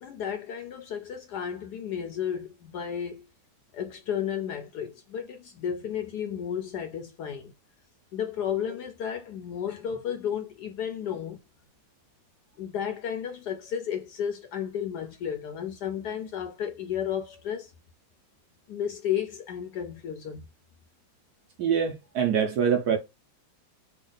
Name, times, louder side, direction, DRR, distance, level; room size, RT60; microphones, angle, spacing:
voice 1, 0.0-3.2 3.7-7.5 8.1-11.4 12.6-17.7 18.7-20.5, left 8 dB, 70° left, 1.0 m, -33 dB
voice 2, 21.6-23.0, right 7 dB, 65° right, 1.0 m, -24 dB
3.5 x 2.3 x 3.8 m
omnidirectional pair, 2.2 m